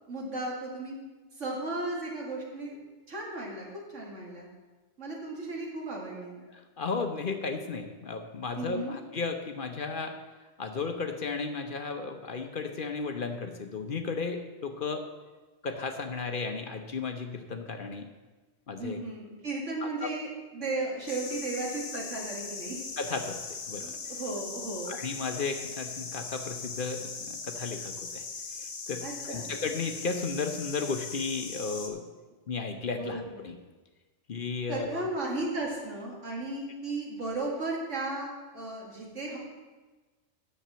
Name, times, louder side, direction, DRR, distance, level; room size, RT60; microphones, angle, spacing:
voice 1, 0.1-1.0 1.4-2.8 3.1-4.5 5.0-6.4 8.6-9.0 18.7-22.8 23.8-25.0 29.0-29.5 33.0-33.2 34.7-39.4, right 2 dB, 80° right, -2 dB, 2.6 m, -35 dB
voice 2, 6.5-10.2 10.6-15.0 15.6-18.1 18.7-19.0 19.8-20.1 23.0-23.4 23.7-23.9 24.9-28.2 28.6-32.0 32.5-33.6 34.3-35.1, left 4 dB, 50° left, 6 dB, 0.9 m, -34 dB
sound 1, 21.1-31.9, left 4 dB, 65° left, 1.4 m, -40 dB
8.5 x 6.8 x 7.5 m, 1.3 s
omnidirectional pair, 1.2 m